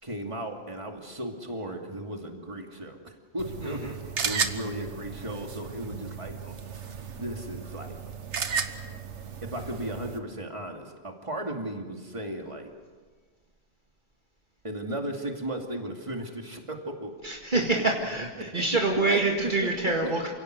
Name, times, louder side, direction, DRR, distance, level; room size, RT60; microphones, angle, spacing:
voice 1, 0.0-3.9 4.2-6.6 7.1-8.0 9.4-12.7 14.6-17.1 17.5-17.8 18.4-18.6 18.9-19.4 20.0-20.1, right 1 dB, 25° right, 2 dB, 2.6 m, -35 dB
sound 1, 3.4-10.2, right 6 dB, 70° right, 1.6 m, -34 dB
voice 2, 3.6-3.9 17.2-20.3, right 2 dB, 40° right, 0 dB, 2.1 m, -26 dB
28.0 x 17.5 x 7.9 m, 1.5 s
omnidirectional pair, 1.2 m